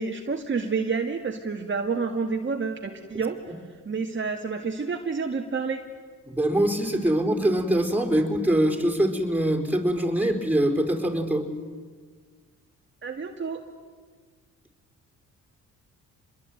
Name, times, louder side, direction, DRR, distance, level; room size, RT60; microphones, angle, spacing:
voice 1, 0.0-3.4 3.9-5.8 13.0-13.6, right 5 dB, 35° right, 2 dB, 2.1 m, -29 dB
voice 2, 6.2-11.5, right 1 dB, 5° right, 2 dB, 4.6 m, -23 dB
26.5 x 22.0 x 9.3 m, 1.5 s
cardioid pair, 85°, 33 cm